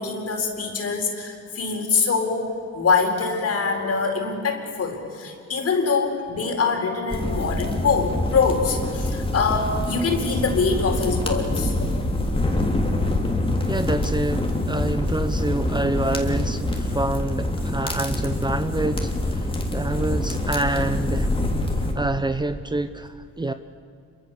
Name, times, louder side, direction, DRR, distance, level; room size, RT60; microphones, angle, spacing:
voice 1, 0.0-11.7, left 4 dB, 50° left, 4 dB, 4.5 m, -24 dB
sound 1, 7.1-21.9, left 1 dB, 20° left, 3.3 m, -25 dB
voice 2, 13.7-21.3 21.8-23.5, right 2 dB, 15° right, 10 dB, 0.9 m, -27 dB
27.0 x 23.5 x 7.2 m, 2.3 s
cardioid pair, 90°, 30 cm